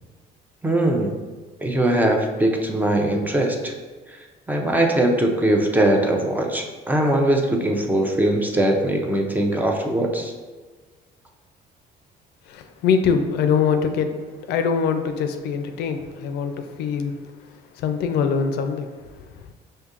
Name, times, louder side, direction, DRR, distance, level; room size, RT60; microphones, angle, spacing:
voice 1, 0.6-1.1 1.6-3.7 4.5-10.3, right 1 dB, 10° right, 2 dB, 0.4 m, -21 dB
voice 2, 12.5-14.1 14.5-17.1 17.8-18.9, left 6 dB, 80° left, 7 dB, 0.4 m, -23 dB
5.0 x 2.6 x 2.5 m, 1.4 s
cardioid pair, 110°, 17 cm